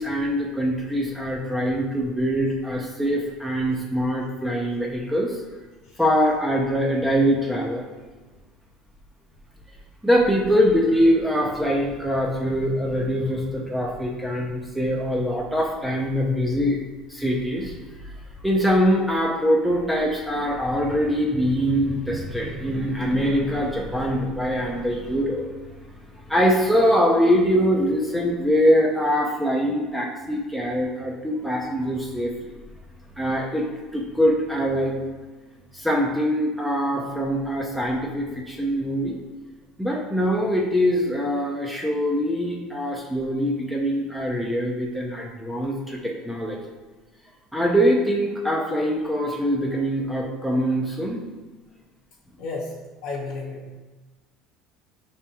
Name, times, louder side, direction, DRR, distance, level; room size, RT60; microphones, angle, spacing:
voice 1, 0.0-5.4 6.0-7.8 10.0-16.8 17.1-17.8 18.4-25.4 26.3-32.3 33.2-34.9 35.7-39.2 39.8-46.6 47.5-51.2, equal, ahead, -2 dB, 0.5 m, -23 dB
voice 2, 53.0-53.8, left 3 dB, 90° left, -6 dB, 0.9 m, -32 dB
5.0 x 3.5 x 2.8 m, 1.3 s
cardioid pair, 135°, 0 cm